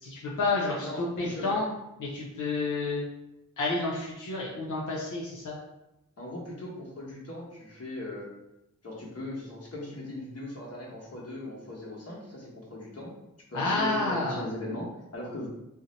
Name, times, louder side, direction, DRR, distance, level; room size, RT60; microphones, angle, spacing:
voice 1, 0.0-1.7 2.0-3.0 3.6-5.6 13.5-14.4, left 3 dB, 90° left, -5 dB, 0.6 m, -30 dB
voice 2, 0.8-1.6 6.2-8.3 8.8-13.1 13.5-15.5, left 1 dB, 55° left, -3 dB, 1.1 m, -38 dB
2.6 x 2.1 x 3.9 m, 0.90 s
cardioid pair, 50°, 30 cm